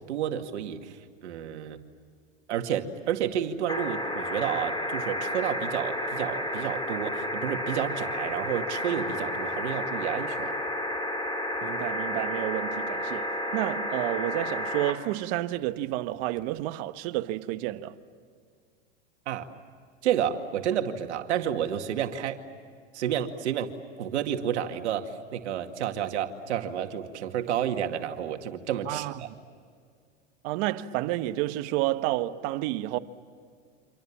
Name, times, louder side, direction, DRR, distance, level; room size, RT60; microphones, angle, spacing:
voice 1, 0.1-1.8 2.5-10.5 19.3-19.5 20.0-22.4 22.9-23.7 24.0-29.3, right 9 dB, 80° right, 2.3 m, -30 dB
sound 1, 3.7-14.9 16.4-16.5, left 1 dB, 15° left, 3.7 m, -31 dB
voice 2, 11.6-13.3 13.5-17.9 28.9-29.3 30.4-33.0, right 16 dB, 55° right, 1.4 m, -30 dB
29.0 x 26.5 x 7.4 m
hypercardioid pair, 110°, 34 cm